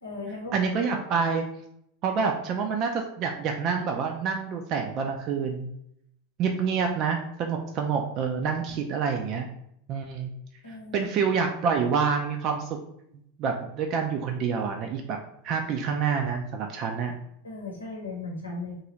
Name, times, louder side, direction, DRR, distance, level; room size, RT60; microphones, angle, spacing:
voice 1, 0.0-0.5 10.6-11.1 17.4-18.8, left 3 dB, 80° left, -2 dB, 0.9 m, -37 dB
voice 2, 0.5-1.4 2.0-5.7 6.4-9.5 9.9-10.3 10.9-12.7 13.4-15.2 15.4-17.1, right 6 dB, 40° right, 3 dB, 0.4 m, -27 dB
3.0 x 2.5 x 2.9 m, 0.74 s
figure-of-eight pair, 85°, 0 cm